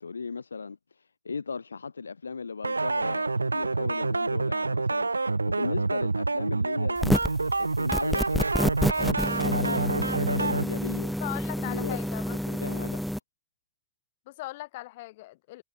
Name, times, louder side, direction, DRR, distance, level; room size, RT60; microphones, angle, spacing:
voice 1, 0.0-7.0 7.6-11.2 11.6-12.0 12.3-13.0, left 5 dB, 75° left, 2.3 m, -37 dB
sound 1, 2.6-10.6, right 3 dB, 80° right, 0.7 m, -27 dB
sound 2, 7.0-7.4 7.9-13.2, equal, ahead, 0.6 m, -28 dB
voice 2, 11.2-12.4 14.3-15.6, left 19 dB, 50° left, 5.2 m, -39 dB
figure-of-eight pair, 90°, 0 cm